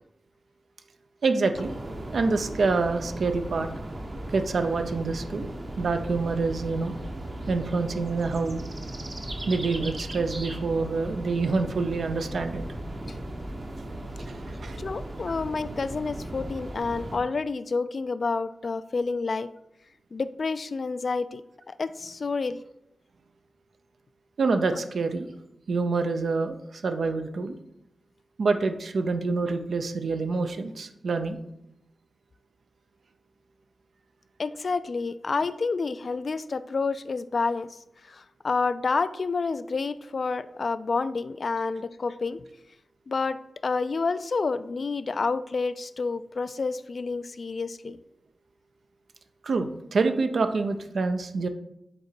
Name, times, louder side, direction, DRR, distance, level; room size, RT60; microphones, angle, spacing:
voice 1, 1.2-1.7 2.1-3.7 4.3-5.5 5.8-6.9 7.5-8.7 9.5-12.6 14.3-14.8 24.4-25.3 25.7-27.5 28.4-31.4 49.4-51.5, right 4 dB, 70° right, 8 dB, 0.6 m, -26 dB
sound 1, 1.5-17.2, right 1 dB, 40° right, 0.9 m, -37 dB
voice 2, 14.8-19.5 20.1-21.4 21.7-22.6 34.4-37.8 38.0-42.4 43.1-48.0, left 4 dB, 50° left, 13 dB, 0.3 m, -29 dB
7.8 x 3.8 x 4.4 m, 0.82 s
wide cardioid pair, 115°, 0 cm